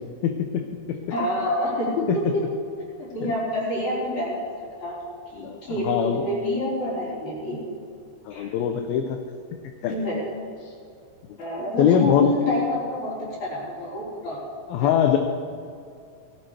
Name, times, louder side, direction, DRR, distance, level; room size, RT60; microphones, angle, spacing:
voice 1, 0.2-1.0 3.2-3.3 5.4-6.2 8.3-9.2 9.8-10.0 10.6-10.7 11.8-12.3 14.7-15.2, left 9 dB, 75° left, 5 dB, 2.5 m, -23 dB
voice 2, 1.1-2.1 2.3-2.4 2.8-4.4 4.8-5.0 5.3-7.6 8.3-8.5 9.9-10.2 11.4-14.5 14.8-15.1, left 2 dB, 45° left, -7 dB, 5.8 m, -27 dB
18.0 x 16.5 x 3.4 m, 2.4 s
omnidirectional pair, 4.5 m